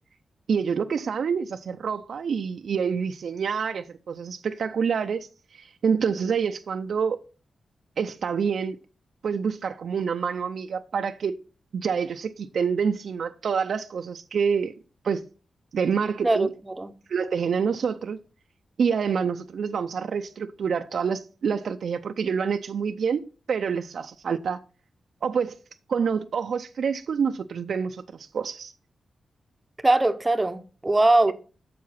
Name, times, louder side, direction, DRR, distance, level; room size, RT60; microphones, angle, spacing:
voice 1, 0.5-5.3 5.5-7.2 8.0-8.8 9.2-11.4 11.7-14.7 15.0-15.3 15.7-16.5 17.1-18.2 18.8-23.2 23.5-24.6 25.2-25.6 25.9-28.7, right 6 dB, 65° right, 0.5 m, -27 dB
voice 2, 29.8-31.3, right 2 dB, 15° right, 0.7 m, -21 dB
7.6 x 6.9 x 5.7 m
wide cardioid pair, 140°, 0 cm